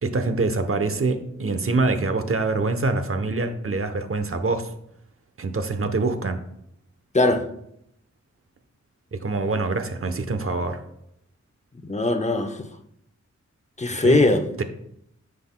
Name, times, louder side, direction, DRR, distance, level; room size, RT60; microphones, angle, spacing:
voice 1, 0.0-4.7 5.4-6.4 9.1-10.8 14.0-14.2 14.6-14.7, right 3 dB, 50° right, 0.9 m, -25 dB
voice 2, 7.1-7.5 11.8-12.7 13.8-14.4, left 2 dB, 25° left, 0.8 m, -20 dB
9.6 x 7.5 x 2.2 m
wide cardioid pair, 80°, 29 cm